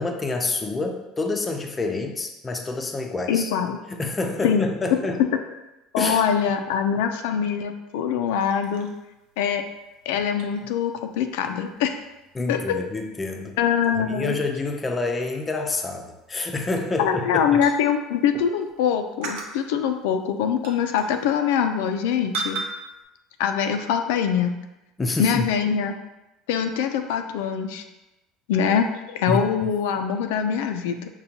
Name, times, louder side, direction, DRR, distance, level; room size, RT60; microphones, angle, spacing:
voice 1, 0.0-3.5 3.9-5.2 6.0-6.2 12.3-13.5 14.0-17.6 25.0-25.5 29.3-29.4, left 3 dB, 15° left, 3 dB, 0.4 m, -27 dB
voice 2, 3.3-3.8 4.4-4.7 5.3-5.4 5.9-8.9 9.4-9.6 10.1-12.0 12.5-12.8 13.6-14.3 17.0-22.6 23.4-24.5 25.2-25.9 26.5-27.8 28.5-31.1, left 7 dB, 90° left, 6 dB, 0.3 m, -23 dB
sound 1, 8.4-18.8 19.2-22.0 22.3-23.0, right 3 dB, 80° right, 0.6 m, -40 dB
5.5 x 2.2 x 2.7 m, 0.99 s
cardioid pair, 145°, 0 cm